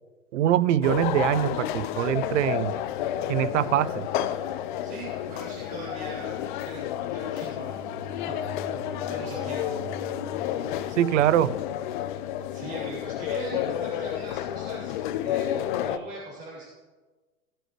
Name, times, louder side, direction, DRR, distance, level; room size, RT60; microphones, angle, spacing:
voice 1, 0.3-2.7 3.3-4.1 11.0-11.6, right 11 dB, 55° right, 18 dB, 0.6 m, -23 dB
sound 1, 0.8-16.0, left 11 dB, 35° left, 0.5 m, -31 dB
voice 2, 4.8-6.8 7.1-7.8 8.3-8.4 9.1-9.8 12.5-14.9 15.2-16.7, right 2 dB, 35° right, -7 dB, 2.9 m, -40 dB
Bowed string instrument, 7.4-11.9, right 2 dB, 5° left, 1.1 m, -44 dB
16.0 x 7.8 x 3.1 m, 1.3 s
hypercardioid pair, 110°, 44 cm